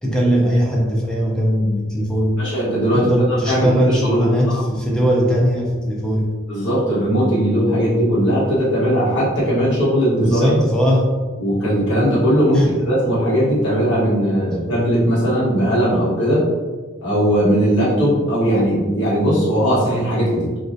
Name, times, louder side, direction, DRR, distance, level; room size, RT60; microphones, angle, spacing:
voice 1, 0.0-2.4 2.9-6.3 10.2-11.1 12.5-12.7, equal, 5° left, -3 dB, 0.4 m, -19 dB
voice 2, 2.4-4.3 6.5-10.5 11.4-16.5 17.0-20.6, equal, 60° left, -9 dB, 1.1 m, -18 dB
2.4 x 2.1 x 2.5 m, 1.4 s
head